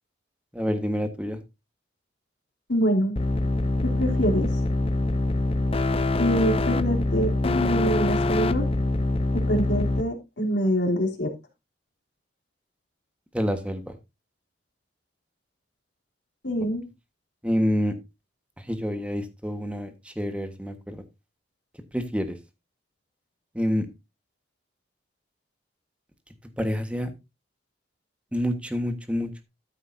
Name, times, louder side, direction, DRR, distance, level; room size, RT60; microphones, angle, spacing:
voice 1, 0.5-1.4 13.3-13.8 17.4-17.9 18.7-21.0 21.9-22.4 23.5-23.9 26.6-27.1 28.3-29.4, equal, 5° right, 7 dB, 1.3 m, -27 dB
voice 2, 2.7-3.2 3.8-4.5 6.2-8.7 9.3-11.3 16.4-16.9, equal, 70° left, 0 dB, 3.1 m, -25 dB
sound 1, 3.2-10.0, left 2 dB, 30° left, 0.6 m, -24 dB
13.5 x 8.0 x 2.7 m, 0.24 s
head